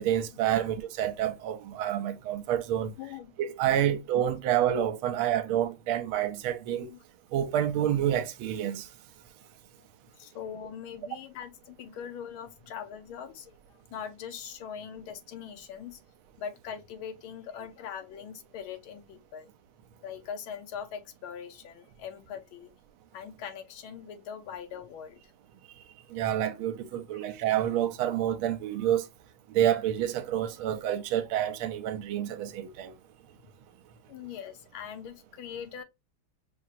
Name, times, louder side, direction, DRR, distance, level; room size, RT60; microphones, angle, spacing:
voice 1, 0.0-2.9 3.4-6.9 7.3-8.9 26.1-29.0 29.5-32.9, right 11 dB, 80° right, 1.4 m, -28 dB
voice 2, 3.0-3.3 3.8-3.9 6.7-7.0 10.2-16.0 16.4-19.5 20.0-22.7 23.1-25.3 34.1-35.8, left 8 dB, 75° left, 1.5 m, -41 dB
5.8 x 2.8 x 2.4 m
omnidirectional pair, 2.4 m